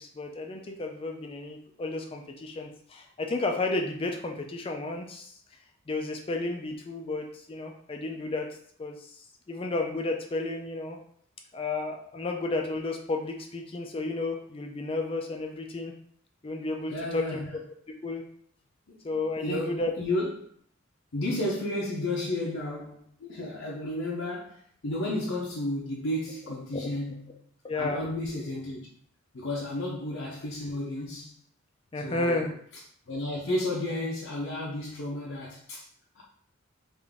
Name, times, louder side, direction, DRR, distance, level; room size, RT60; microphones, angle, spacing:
voice 1, 0.0-5.3 5.9-8.5 8.8-11.0 11.5-15.9 16.4-17.4 18.0-18.2 19.0-19.9 26.7-27.0 27.6-28.0 31.9-32.5, left 2 dB, 25° left, 0.4 m, -32 dB
voice 2, 16.9-17.5 18.9-19.0 19.4-20.5 21.1-27.4 27.7-28.9 29.3-31.3 32.0-32.5 33.1-35.9 36.1-36.2, left 1 dB, 70° left, 0.7 m, -32 dB
3.8 x 2.6 x 3.4 m
head